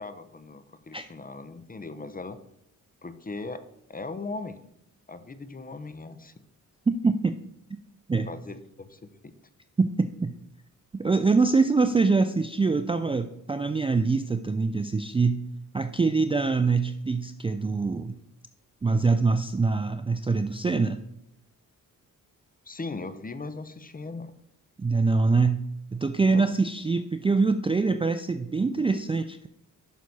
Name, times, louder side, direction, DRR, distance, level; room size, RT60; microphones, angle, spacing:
voice 1, 0.0-2.4 3.0-4.6 5.1-6.3 8.3-9.3 22.6-24.3 26.3-26.5, left 3 dB, 25° left, 12 dB, 0.7 m, -39 dB
voice 2, 6.9-7.3 8.1-8.3 9.8-10.3 10.9-15.4 15.7-18.2 18.8-21.0 24.8-25.6 25.9-29.5, right 4 dB, 15° right, 9 dB, 0.3 m, -24 dB
6.3 x 6.1 x 4.1 m, 0.78 s
cardioid pair, 60°, 36 cm